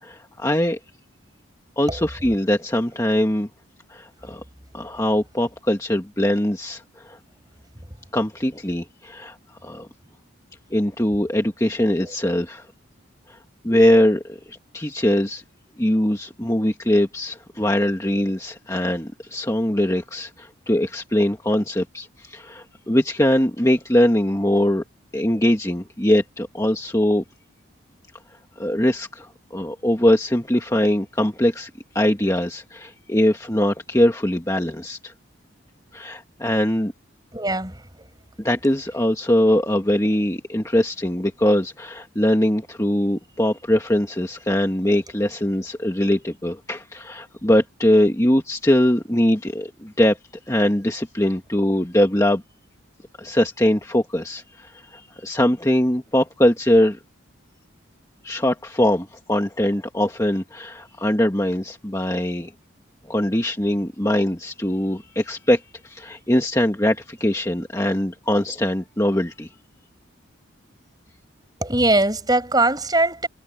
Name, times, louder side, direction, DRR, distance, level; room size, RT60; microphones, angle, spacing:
voice 1, 0.0-0.8 1.8-3.5 3.9-4.4 4.7-7.2 8.1-9.4 9.6-9.9 10.7-12.7 13.3-13.4 13.6-15.4 15.8-24.8 25.1-27.2 28.6-31.7 31.9-35.1 35.9-36.9 38.4-50.2 50.5-52.4 53.2-57.0 58.2-62.5 63.1-69.5, left 1 dB, 15° left, 1.5 m, -21 dB
voice 2, 37.3-37.8 71.6-73.3, right 2 dB, 20° right, 7.2 m, -20 dB
head